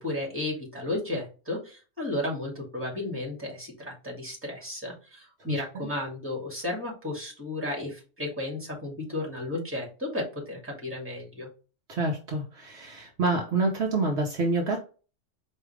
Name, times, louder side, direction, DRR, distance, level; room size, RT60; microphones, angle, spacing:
voice 1, 0.0-11.5, left 2 dB, 10° right, -2 dB, 1.8 m, -33 dB
voice 2, 11.9-14.8, right 3 dB, 60° right, 1 dB, 1.0 m, -27 dB
4.8 x 2.7 x 3.2 m, 0.36 s
omnidirectional pair, 1.3 m